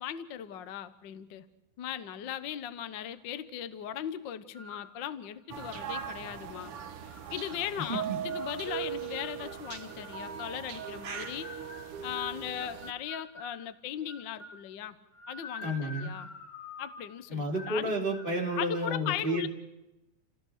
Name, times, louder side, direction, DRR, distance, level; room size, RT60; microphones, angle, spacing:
voice 1, 0.0-1.4 1.8-6.7 7.3-11.5 12.0-15.0 15.3-16.3 16.8-17.9 18.6-19.5, left 10 dB, 70° left, 12 dB, 1.0 m, -38 dB
sound 1, 4.5-4.9 5.5-6.1 6.7-7.7 8.3-10.2 10.8-13.6 14.1-14.6 15.1-17.1 17.5-17.8 18.1-18.5, left 2 dB, 55° left, 6.5 m, -47 dB
sound 2, 5.5-12.9, right 8 dB, 55° right, 1.9 m, -39 dB
voice 2, 7.8-8.2 15.6-16.1 17.3-19.5, right 1 dB, 15° right, -1 dB, 3.5 m, -31 dB
29.0 x 17.5 x 6.5 m, 0.97 s
omnidirectional pair, 3.5 m